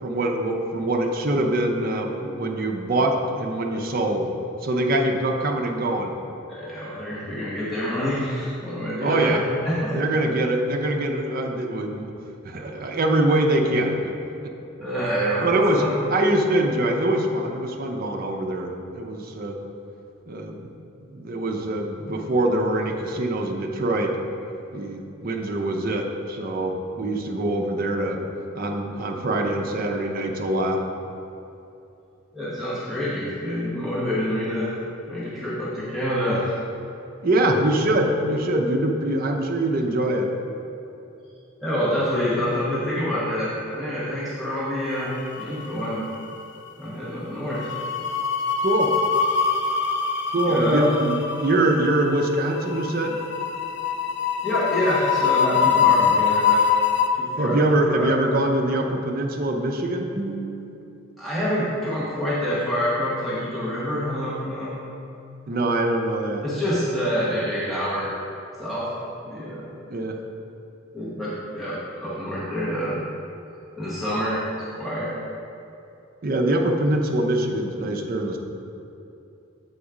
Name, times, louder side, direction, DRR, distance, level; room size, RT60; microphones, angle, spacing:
voice 1, 0.0-4.3 4.6-6.1 9.0-9.4 9.9-12.1 12.4-14.2 14.4-14.5 15.4-15.8 16.1-19.6 20.3-20.7 21.1-24.2 24.7-28.2 28.5-30.8 37.2-40.3 48.6-48.9 50.3-53.1 57.4-60.8 65.5-66.4 69.9-70.2 76.2-78.4, right 1 dB, 45° right, 2 dB, 0.6 m, -24 dB
voice 2, 6.5-10.0 14.8-15.9 32.3-34.8 35.1-36.6 41.6-46.0 46.8-47.8 50.3-50.9 54.4-56.6 57.1-57.6 57.9-58.1 61.2-64.7 66.4-68.1 68.6-68.9 69.2-69.7 70.9-71.7 72.0-72.9 73.8-74.4 74.7-75.1, equal, ahead, -11 dB, 1.2 m, -26 dB
sound 1, 45.0-45.8 46.1-46.3 47.5-57.1, left 6 dB, 55° left, 0.5 m, -23 dB
7.9 x 4.1 x 4.9 m, 2.8 s
head